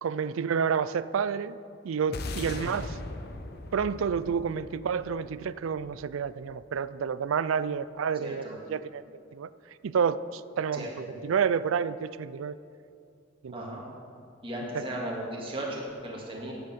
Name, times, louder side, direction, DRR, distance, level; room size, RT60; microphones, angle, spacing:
voice 1, 0.0-1.6 1.8-3.0 3.7-9.0 9.3-9.5 9.8-12.6 13.4-13.8 14.7-14.8, right 6 dB, 85° right, 16 dB, 0.4 m, -29 dB
sound 1, 2.1-6.6, left 2 dB, 50° left, 0.8 m, -39 dB
voice 2, 8.2-8.6 10.7-11.2 13.5-13.8 14.4-16.5, right 1 dB, 25° right, -3 dB, 1.9 m, -36 dB
10.5 x 8.2 x 6.8 m, 2.4 s
head